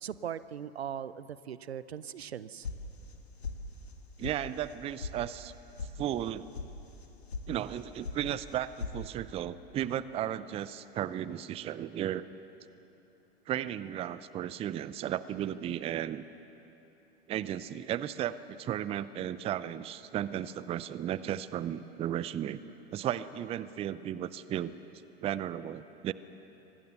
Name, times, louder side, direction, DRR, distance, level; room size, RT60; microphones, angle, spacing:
voice 1, 0.0-2.7, right 9 dB, 75° right, 17 dB, 0.7 m, -39 dB
sound 1, 2.6-3.2 3.4-4.0 4.2-4.3 4.7-5.1 5.4-5.9 6.2-6.7 7.0-7.5 7.7-8.2 8.5-9.0, left 5 dB, 80° left, 1.9 m, -39 dB
voice 2, 4.2-5.5 6.0-6.5 7.5-12.3 13.5-16.2 17.3-24.8 25.2-26.1, right 11 dB, 20° right, 16 dB, 0.5 m, -35 dB
25.0 x 19.0 x 6.8 m, 3.0 s
figure-of-eight pair, 90°, 32 cm